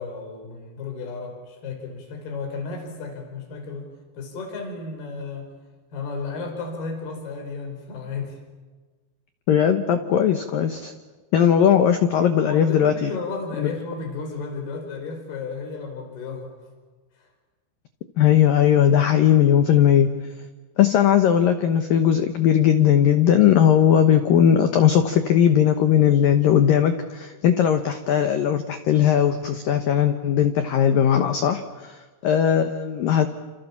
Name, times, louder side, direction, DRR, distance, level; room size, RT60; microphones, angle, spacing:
voice 1, 0.0-3.9 4.1-5.5 5.9-8.4 12.4-16.5 17.2-17.3, left 4 dB, 50° left, 4 dB, 6.6 m, -33 dB
voice 2, 9.5-10.9 11.3-13.1 13.6-13.7 18.2-20.2 20.8-33.3, left 9 dB, 80° left, 8 dB, 2.0 m, -18 dB
29.0 x 28.0 x 7.3 m, 1.3 s
omnidirectional pair, 5.9 m